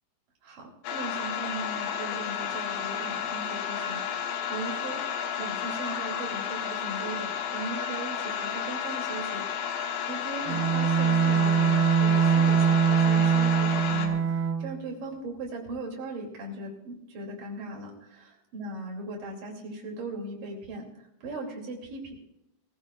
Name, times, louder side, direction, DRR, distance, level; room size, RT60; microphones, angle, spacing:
voice 1, 0.4-20.9 21.2-22.1, right 2 dB, 55° right, 0 dB, 4.2 m, -38 dB
sound 1, 0.8-14.1, left 8 dB, 85° left, 3.6 m, -32 dB
Bowed string instrument, 10.5-14.8, right 7 dB, 75° right, 2.6 m, -23 dB
22.0 x 15.0 x 2.4 m, 0.85 s
omnidirectional pair, 4.9 m